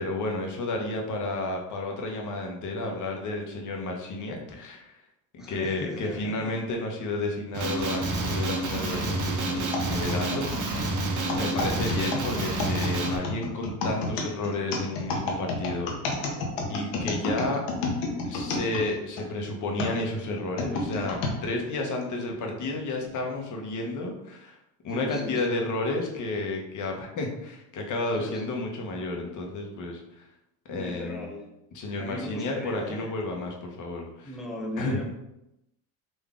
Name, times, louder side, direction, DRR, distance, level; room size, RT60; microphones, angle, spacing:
voice 1, 0.0-5.0 5.3-10.9 11.3-15.9 16.7-17.6 18.2-24.6 24.8-30.3 30.7-31.3 31.7-34.3 34.8-35.0, left 2 dB, 45° left, 1 dB, 0.9 m, -31 dB
voice 2, 5.4-6.5 11.3-12.0 24.9-25.4 28.2-28.4 30.7-31.5 32.0-33.1 34.2-35.0, equal, ahead, -1 dB, 0.5 m, -38 dB
Male speech man speaking, 7.5-13.2, right 2 dB, 45° right, 0.9 m, -28 dB
sound 1, 9.7-19.3 19.8-21.4 22.0-22.1 23.0-23.2, left 3 dB, 80° left, 1.0 m, -31 dB
3.9 x 2.6 x 3.5 m, 0.87 s
cardioid pair, 115°, 42 cm